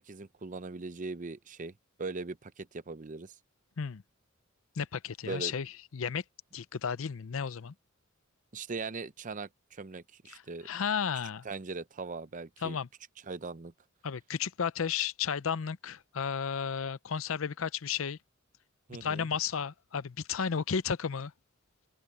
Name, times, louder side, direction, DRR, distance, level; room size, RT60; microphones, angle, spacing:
voice 1, 0.0-1.7 2.0-3.3 5.2-5.5 8.5-10.7 11.4-12.8 13.3-13.7 18.9-19.3, right 4 dB, 40° right, 0.6 m, -40 dB
voice 2, 4.8-6.2 6.5-7.7 10.3-11.5 12.6-12.9 14.0-18.2 19.0-21.3, left 7 dB, 75° left, 0.6 m, -33 dB
head